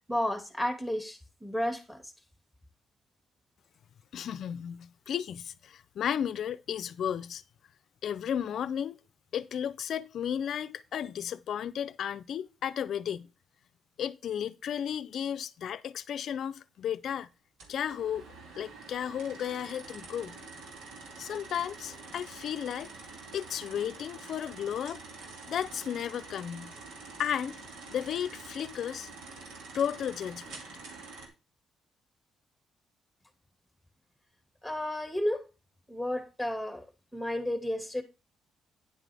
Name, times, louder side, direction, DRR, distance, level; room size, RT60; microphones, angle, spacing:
voice 1, 0.1-2.0 34.6-35.4 35.9-36.8 37.1-38.0, left 1 dB, ahead, 2.0 m, -32 dB
voice 2, 4.1-7.4 8.0-9.0 9.3-13.3 14.0-17.3 17.7-18.2 18.6-20.4 21.2-22.9 23.3-25.0 25.5-26.7 27.2-27.5 27.9-29.1 29.7-30.6, left 9 dB, 65° left, 0.5 m, -34 dB
sound 1, 17.6-31.3, right 4 dB, 85° right, 2.4 m, -47 dB
9.8 x 7.3 x 3.5 m
cardioid pair, 90°, 0 cm